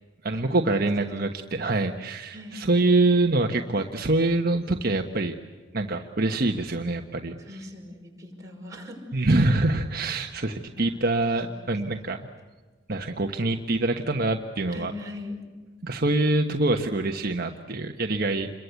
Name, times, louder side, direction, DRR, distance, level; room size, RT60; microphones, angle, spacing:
voice 1, 0.2-5.3 5.7-7.4 9.1-12.3 12.9-14.9 15.8-18.5, right 2 dB, 55° right, 4 dB, 1.2 m, -25 dB
voice 2, 7.4-9.3 10.7-11.0 11.6-11.7 14.7-15.4, left 2 dB, 15° right, -1 dB, 5.9 m, -40 dB
28.5 x 23.0 x 8.3 m, 1.4 s
head